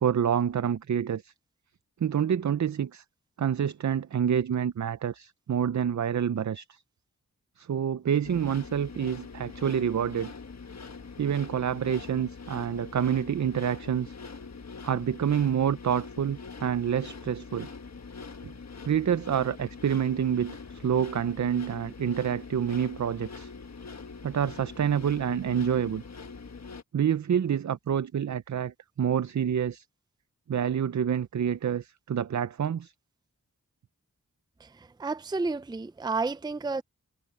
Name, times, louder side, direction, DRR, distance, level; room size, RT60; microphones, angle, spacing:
voice 1, 0.0-1.3 2.0-3.0 3.4-6.8 7.6-10.3 11.2-14.1 14.8-17.7 18.4-18.5 18.9-23.5 24.2-26.0 26.9-29.8 30.5-32.9, right 8 dB, 60° right, 0.6 m, -27 dB
sound 1, 8.2-26.8, left 4 dB, 55° left, 1.4 m, -43 dB
voice 2, 34.6-36.8, right 3 dB, 15° right, 0.5 m, -31 dB
wide cardioid pair, 90°, 33 cm